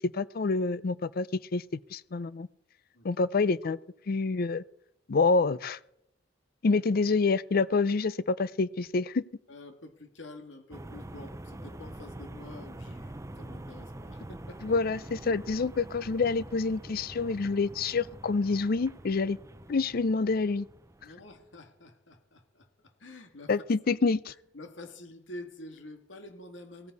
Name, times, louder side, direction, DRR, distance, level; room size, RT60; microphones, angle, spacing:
voice 1, 0.1-1.3 1.5-1.6 1.9-2.5 3.0-3.8 4.1-4.6 5.1-5.8 6.6-9.2 14.6-19.4 19.7-20.7 23.5-24.3, left 4 dB, 50° left, 0.5 m, -27 dB
voice 2, 9.5-14.8 21.0-23.5 24.5-26.9, left 2 dB, 80° left, 2.0 m, -48 dB
sound 1, 10.7-21.6, right 1 dB, 15° right, 0.6 m, -45 dB
17.0 x 14.5 x 4.1 m
head